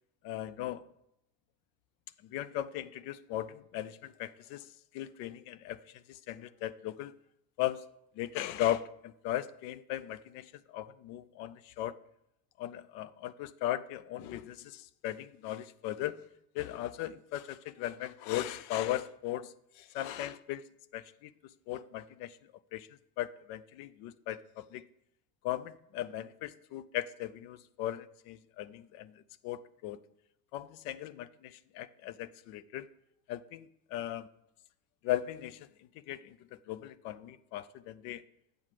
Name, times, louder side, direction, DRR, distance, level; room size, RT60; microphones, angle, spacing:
voice 1, 0.2-0.8 2.2-4.7 4.9-7.1 7.6-7.9 8.2-12.0 12.6-16.2 16.5-20.6 20.9-21.3 21.7-22.4 22.7-22.9 23.2-24.8 25.4-30.0 30.5-32.9 33.3-34.3 35.0-38.2, left 13 dB, 55° left, 18 dB, 0.5 m, -38 dB
8.5 x 5.9 x 4.7 m, 0.78 s
supercardioid pair, 145°, 46 cm